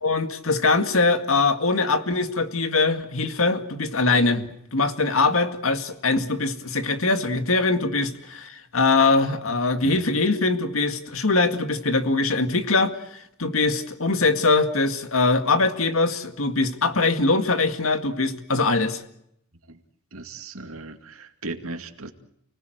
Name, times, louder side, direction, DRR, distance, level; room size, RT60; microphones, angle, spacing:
voice 1, 0.0-19.0, left 3 dB, 75° left, 8 dB, 2.0 m, -22 dB
voice 2, 20.1-22.1, right 2 dB, 85° right, 7 dB, 2.3 m, -37 dB
30.0 x 19.0 x 7.9 m, 0.77 s
head